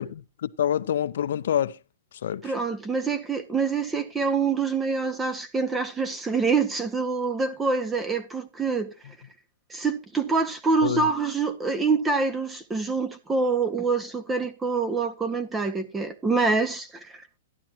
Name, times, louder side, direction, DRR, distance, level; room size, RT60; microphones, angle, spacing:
voice 1, 0.0-1.8 2.2-2.5 10.8-11.1, left 10 dB, 70° left, 0.7 m, -27 dB
voice 2, 2.4-8.9 9.7-17.1, right 4 dB, 10° right, 0.8 m, -26 dB
12.0 x 11.0 x 2.9 m
hypercardioid pair, 155°, 0 cm